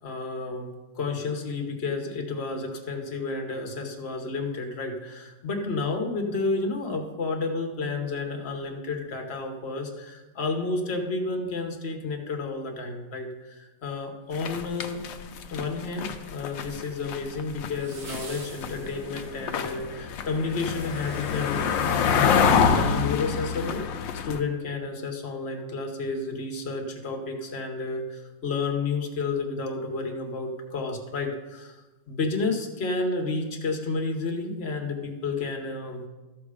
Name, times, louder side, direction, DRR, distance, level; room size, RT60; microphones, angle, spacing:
voice 1, 0.0-15.0 15.5-23.9 24.2-36.1, left 3 dB, 40° left, 3 dB, 1.0 m, -31 dB
sound 1, 14.3-16.8 17.1-24.4, left 6 dB, 70° left, 1.3 m, -26 dB
sound 2, 14.3-15.3 17.8-23.6 24.0-24.1, right 3 dB, 90° right, 2.6 m, -48 dB
13.5 x 6.1 x 4.9 m, 1.2 s
omnidirectional pair, 2.3 m